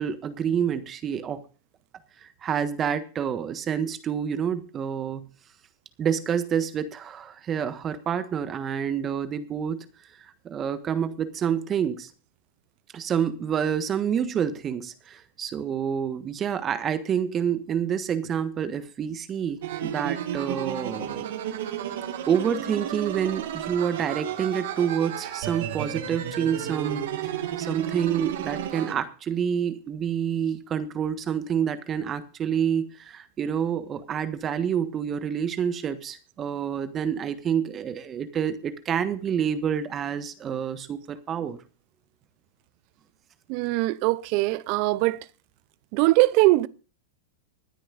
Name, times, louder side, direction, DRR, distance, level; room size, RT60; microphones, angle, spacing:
voice 1, 0.0-1.4 2.2-5.3 6.0-9.9 10.4-12.1 12.9-21.3 22.3-41.6, right 8 dB, 30° right, 1.4 m, -28 dB
sound 1, 19.6-28.9, right 10 dB, 70° right, 1.9 m, -32 dB
voice 2, 43.5-45.2 45.9-46.7, right 20 dB, 50° right, 0.6 m, -21 dB
25.0 x 9.9 x 2.6 m
hypercardioid pair, 105°, 0 cm